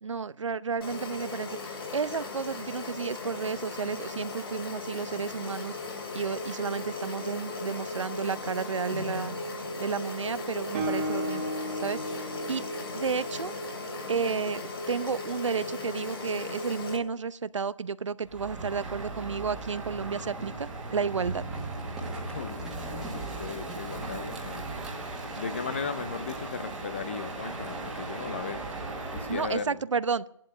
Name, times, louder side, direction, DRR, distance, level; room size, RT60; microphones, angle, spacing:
voice 1, 0.0-5.8 6.1-9.4 9.8-11.5 11.8-12.6 12.9-13.5 14.1-14.6 14.9-21.4 29.3-30.2, right 5 dB, 70° right, 0.7 m, -32 dB
sound 1, 0.8-17.0, left 2 dB, 50° left, 2.9 m, -37 dB
Guitar, 10.7-14.4, equal, 25° right, 1.7 m, -36 dB
Crow, 18.2-29.7, right 2 dB, 5° right, 1.6 m, -37 dB
voice 2, 22.3-24.7 25.4-28.7 29.1-29.8, left 5 dB, 20° left, 0.6 m, -37 dB
17.5 x 11.5 x 6.5 m
hypercardioid pair, 170°, 16 cm